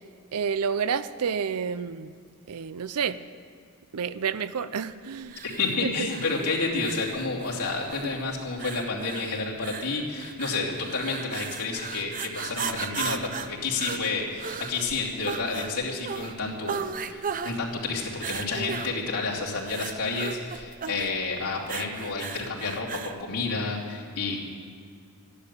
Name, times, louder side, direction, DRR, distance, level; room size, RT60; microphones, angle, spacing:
voice 1, 0.3-2.1 2.5-3.2 3.9-5.3 5.8-6.1, right 6 dB, 80° right, 14 dB, 0.6 m, -29 dB
sound 1, 5.3-23.2, right 6 dB, 40° right, 0.6 m, -36 dB
voice 2, 5.4-16.8 17.1-24.4, left 3 dB, 85° left, -4 dB, 2.9 m, -30 dB
14.0 x 11.0 x 6.8 m, 2.3 s
head